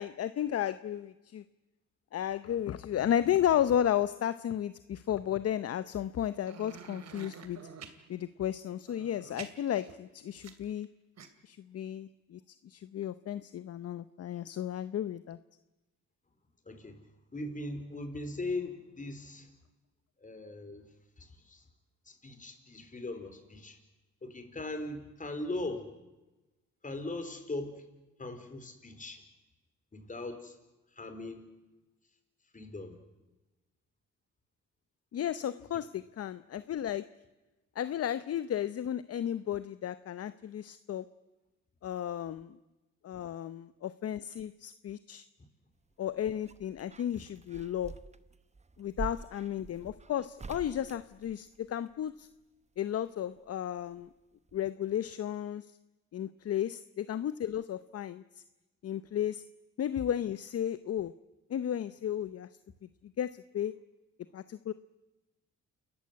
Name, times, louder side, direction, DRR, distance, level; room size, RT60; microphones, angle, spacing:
voice 1, 0.0-1.4 2.1-7.6 8.1-10.9 11.4-15.4 35.1-37.0 37.8-41.0 41.8-42.6 43.0-45.3 46.0-47.9 48.8-52.3 52.8-54.1 54.5-55.7 56.1-58.2 58.8-59.4 59.8-61.1 61.5-62.5 63.2-63.7 64.3-64.7, left 10 dB, 55° left, 14 dB, 0.8 m, -33 dB
sound 1, 6.4-8.0 8.8-10.8 11.2-11.3, right 6 dB, 60° right, 2.7 m, -48 dB
voice 2, 16.7-19.5 20.2-20.9 21.2-21.7 22.1-23.8 24.2-25.9 26.8-27.8 28.2-29.2 29.9-30.6 30.9-31.5 32.5-33.0, left 2 dB, 25° left, 7 dB, 4.3 m, -40 dB
sound 2, 45.9-51.9 53.4-54.2 54.5-54.6, right 4 dB, 20° right, 1.0 m, -46 dB
29.0 x 14.5 x 9.5 m, 1.1 s
cardioid pair, 90°, 30 cm